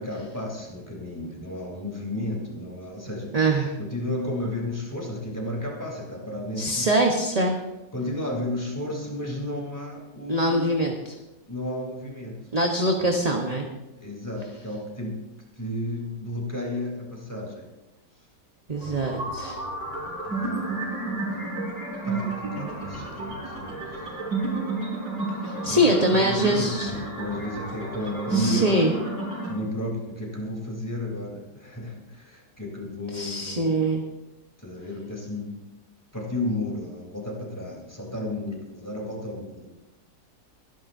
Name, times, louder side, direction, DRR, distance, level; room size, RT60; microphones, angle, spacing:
voice 1, 0.0-3.4 3.8-6.9 7.9-10.7 11.5-12.4 12.9-13.3 14.0-15.2 15.6-17.6 20.2-21.6 22.0-23.8 25.7-25.8 26.1-28.8 29.5-33.8 34.6-35.5 36.1-39.7, left 1 dB, 10° left, -1 dB, 3.4 m, -33 dB
voice 2, 3.3-3.8 6.6-7.6 10.3-11.2 12.5-13.7 18.7-19.6 25.4-26.9 28.3-28.9 33.1-34.0, right 1 dB, 25° right, 1 dB, 1.0 m, -23 dB
sound 1, 18.7-29.5, right 3 dB, 80° right, 5.8 m, -31 dB
24.0 x 10.5 x 2.7 m, 1.0 s
omnidirectional pair, 1.9 m